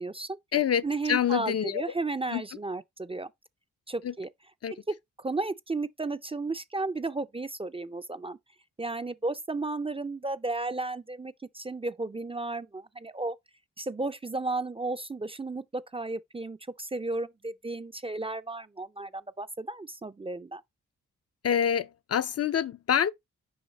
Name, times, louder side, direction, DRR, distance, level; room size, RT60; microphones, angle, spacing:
voice 1, 0.0-0.4 0.8-3.3 3.9-4.3 4.7-8.4 8.8-13.4 13.8-20.6, right 3 dB, 20° right, 0.4 m, -34 dB
voice 2, 0.5-0.8 1.1-1.8 2.3-2.4 4.0-4.1 4.6-4.7 21.4-23.1, left 9 dB, 50° left, 0.5 m, -26 dB
6.4 x 4.6 x 4.0 m
cardioid pair, 65°, 32 cm